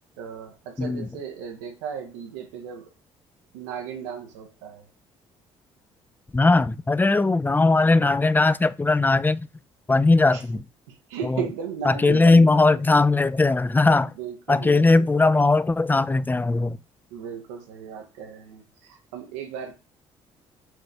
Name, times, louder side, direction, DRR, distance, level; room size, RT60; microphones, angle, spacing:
voice 1, 0.2-2.9 3.5-4.9 10.3-10.4 10.9-12.6 14.2-15.1 17.1-19.7, right 7 dB, 80° right, 1.0 m, -36 dB
voice 2, 0.8-1.1 6.3-9.5 9.9-10.6 11.3-11.4 11.9-14.1 14.5-16.8, left 3 dB, 15° left, 0.3 m, -19 dB
6.2 x 2.6 x 3.3 m
hypercardioid pair, 50°, 15 cm